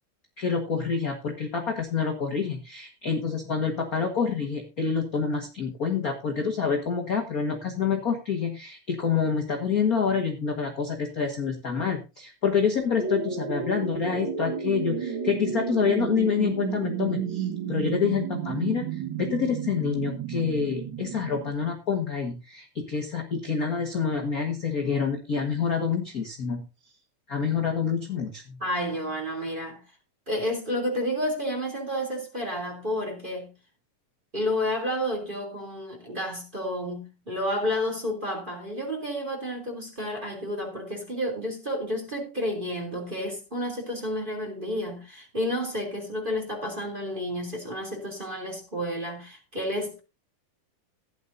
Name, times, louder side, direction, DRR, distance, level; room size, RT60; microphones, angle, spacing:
voice 1, 0.4-26.6 27.3-28.6, left 6 dB, 45° left, 1.2 m, -27 dB
sound 1, 13.0-21.5, right 7 dB, 45° right, 1.8 m, -32 dB
voice 2, 28.6-29.8 30.3-33.5 34.3-50.0, equal, 15° right, 2.9 m, -30 dB
16.0 x 10.5 x 2.7 m
omnidirectional pair, 4.0 m